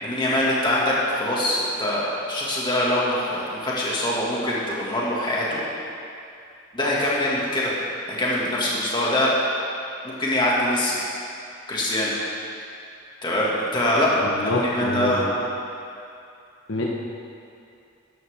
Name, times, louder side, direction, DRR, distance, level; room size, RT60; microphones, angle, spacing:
voice 1, 0.0-5.6 6.7-7.7 8.1-9.3 10.0-11.0 11.7-12.2 13.2-14.1 14.4-15.3, left 1 dB, 20° left, -6 dB, 2.1 m, -23 dB
voice 2, 14.2-15.3 16.7-16.9, left 2 dB, 60° left, -3 dB, 1.1 m, -26 dB
13.5 x 10.5 x 3.6 m, 2.5 s
head